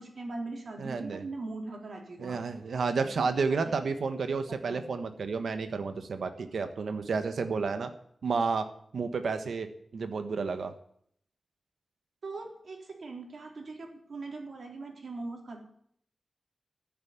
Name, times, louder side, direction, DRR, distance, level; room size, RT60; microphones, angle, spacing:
voice 1, 0.0-2.4 3.0-3.3 3.6-3.7 4.5-4.8 12.2-15.6, right 3 dB, 60° right, 1 dB, 3.9 m, -40 dB
voice 2, 0.8-1.2 2.2-7.9 8.2-8.7 8.9-9.7 9.9-10.7, right 4 dB, 80° right, 8 dB, 1.3 m, -31 dB
14.0 x 7.7 x 9.5 m, 0.66 s
wide cardioid pair, 125°, 0 cm